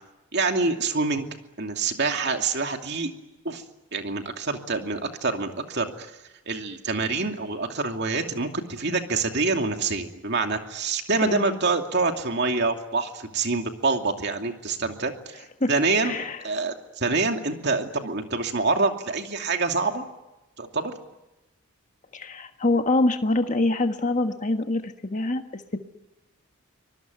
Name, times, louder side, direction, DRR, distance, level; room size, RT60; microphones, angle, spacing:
voice 1, 0.3-1.2 1.6-3.1 3.4-3.6 3.9-6.1 6.5-16.2 16.4-20.0 20.6-20.9, right 3 dB, 50° right, 4 dB, 2.6 m, -26 dB
voice 2, 11.2-11.6 15.6-15.7 16.0-16.4 22.1-25.8, left 2 dB, 35° left, 6 dB, 1.5 m, -25 dB
25.0 x 21.0 x 9.4 m, 0.99 s
head